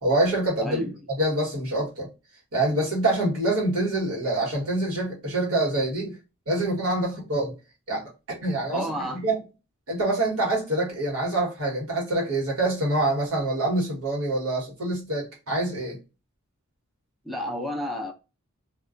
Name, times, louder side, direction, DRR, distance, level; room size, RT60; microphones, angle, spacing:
voice 1, 0.0-0.8 1.1-2.1 2.5-6.1 6.5-7.5 7.9-9.4 9.9-16.0, right 2 dB, 90° right, 1.3 m, -26 dB
voice 2, 0.6-1.0 8.7-9.2 17.2-18.1, equal, ahead, 0.4 m, -31 dB
2.3 x 2.2 x 2.4 m
head